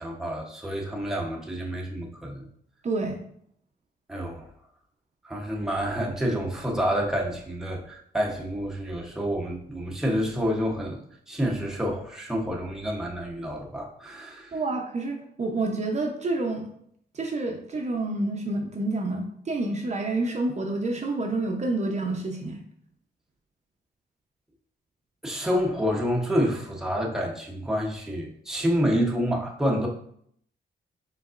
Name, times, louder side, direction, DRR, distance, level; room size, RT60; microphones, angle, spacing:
voice 1, 0.0-2.5 4.1-4.4 5.2-11.0 11.3-14.5 25.2-29.9, equal, 5° right, -2 dB, 0.9 m, -28 dB
voice 2, 2.8-3.2 14.5-16.6 17.1-22.6, right 2 dB, 40° right, 2 dB, 0.7 m, -28 dB
5.1 x 4.0 x 2.5 m, 0.67 s
cardioid pair, 90°, 17 cm